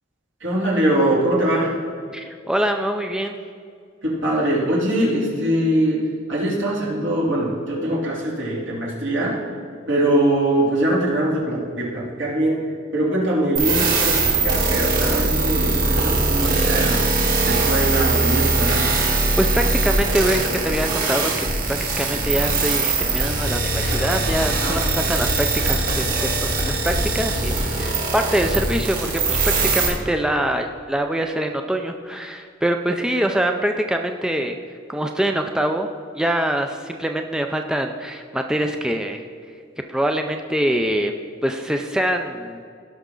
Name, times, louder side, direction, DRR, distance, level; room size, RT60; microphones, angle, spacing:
voice 1, 0.4-1.8 4.0-9.4 9.9-12.6 12.9-17.1 17.4-19.0 24.5-24.8, right 1 dB, 75° right, -5 dB, 3.0 m, -22 dB
voice 2, 2.1-3.4 19.4-34.6 34.9-35.9 36.1-39.2 39.9-41.1 41.4-42.6, right 1 dB, 5° right, 4 dB, 0.4 m, -24 dB
sound 1, 13.6-29.9, right 3 dB, 45° right, 2.4 m, -21 dB
17.0 x 6.0 x 3.8 m, 2.3 s
head